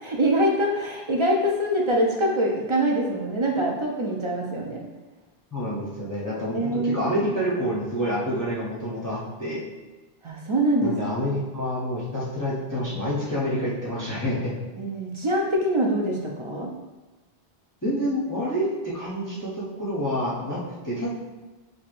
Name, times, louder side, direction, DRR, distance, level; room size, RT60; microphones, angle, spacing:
voice 1, 0.0-4.8 6.5-7.1 10.2-11.0 14.8-16.7, right 1 dB, 50° right, -1 dB, 0.4 m, -24 dB
voice 2, 5.5-9.6 10.8-14.5 17.8-20.6 20.8-21.1, equal, 20° left, -7 dB, 0.6 m, -28 dB
4.5 x 2.8 x 2.5 m, 1.2 s
omnidirectional pair, 1.0 m